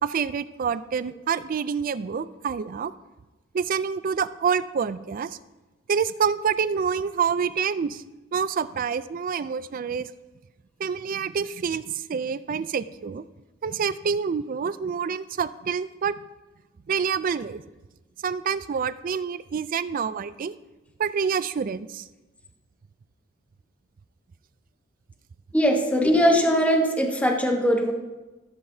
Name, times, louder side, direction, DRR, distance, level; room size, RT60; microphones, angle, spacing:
voice 1, 0.0-2.9 3.5-5.4 5.9-8.0 8.3-10.1 10.8-13.2 13.6-16.1 16.9-17.6 18.2-20.6 21.0-22.1, right 6 dB, 45° right, 15 dB, 0.4 m, -27 dB
voice 2, 25.5-27.9, equal, 5° left, 1 dB, 1.1 m, -20 dB
14.5 x 7.8 x 2.7 m, 1.1 s
head